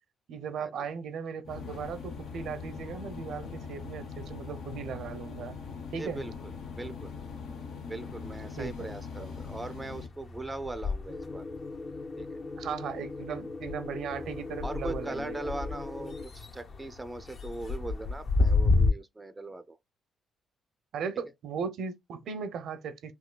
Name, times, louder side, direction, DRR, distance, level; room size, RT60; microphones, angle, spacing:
voice 1, 0.3-5.6 5.9-6.2 8.6-8.9 12.6-15.6 20.9-23.1, right 6 dB, 70° right, 0.6 m, -37 dB
sound 1, 1.4-10.1, left 5 dB, 80° left, 0.9 m, -41 dB
sound 2, 5.6-6.9 7.2-18.9, left 3 dB, 50° left, 0.9 m, -33 dB
voice 2, 6.0-6.5 6.8-7.1 7.9-11.4 12.2-12.4 14.6-19.8, right 2 dB, 15° right, 0.4 m, -40 dB
sound 3, 11.1-16.2, left 3 dB, 30° left, 0.6 m, -40 dB
4.4 x 2.7 x 2.3 m
cardioid pair, 90°, 0 cm